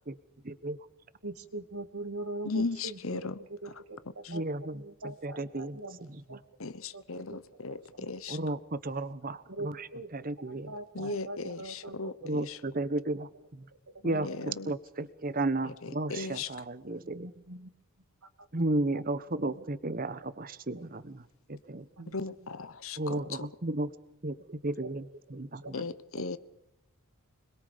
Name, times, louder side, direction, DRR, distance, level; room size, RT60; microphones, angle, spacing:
voice 1, 0.4-0.8 4.3-6.4 8.3-9.9 10.1-11.1 12.2-13.7 14.0-17.3 18.5-21.9 23.0-23.9 24.2-25.1, right 2 dB, 40° right, 14 dB, 1.1 m, -34 dB
voice 2, 1.2-4.4 4.7-6.4 6.9-7.4 7.9-8.1 9.5-10.1 10.4-12.1 12.4-12.5 17.0-17.7 18.2-18.5 19.6-19.7 22.0-22.2 23.1-23.3 24.8-24.9, right 2 dB, 80° right, 8 dB, 2.3 m, -42 dB
voice 3, 2.4-3.7 4.2-4.4 6.6-8.4 10.9-12.6 14.0-14.7 15.8-16.5 22.1-23.5 25.7-25.9 26.2-26.4, left 3 dB, 65° left, 15 dB, 1.1 m, -37 dB
25.5 x 22.0 x 5.2 m, 0.88 s
head